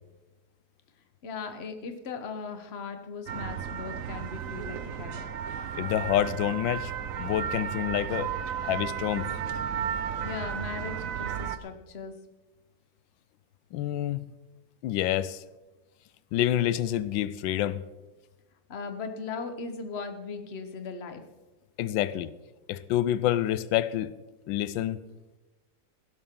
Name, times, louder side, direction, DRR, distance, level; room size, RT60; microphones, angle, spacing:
voice 1, 1.2-5.2 10.2-12.1 18.7-21.2, left 5 dB, 40° left, 1.2 m, -38 dB
sound 1, 3.3-11.6, right 8 dB, 60° right, 0.9 m, -34 dB
voice 2, 5.7-6.9 7.2-9.3 13.7-14.2 14.8-15.4 16.3-17.8 21.8-22.3 22.7-24.1 24.5-25.0, left 12 dB, 90° left, 1.3 m, -28 dB
16.5 x 12.5 x 3.8 m
omnidirectional pair, 2.0 m